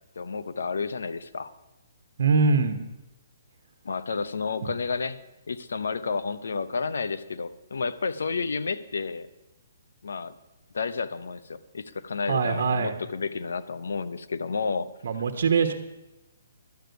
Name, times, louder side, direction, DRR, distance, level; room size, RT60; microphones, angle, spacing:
voice 1, 0.2-1.5 3.8-5.2 5.5-9.3 10.0-10.4 10.7-14.9, left 4 dB, 85° left, 13 dB, 0.8 m, -31 dB
voice 2, 2.2-2.9 4.6-4.7 12.3-12.9 15.0-15.7, right 5 dB, 65° right, 6 dB, 1.2 m, -23 dB
11.5 x 6.9 x 9.2 m, 0.99 s
hypercardioid pair, 165°, 0 cm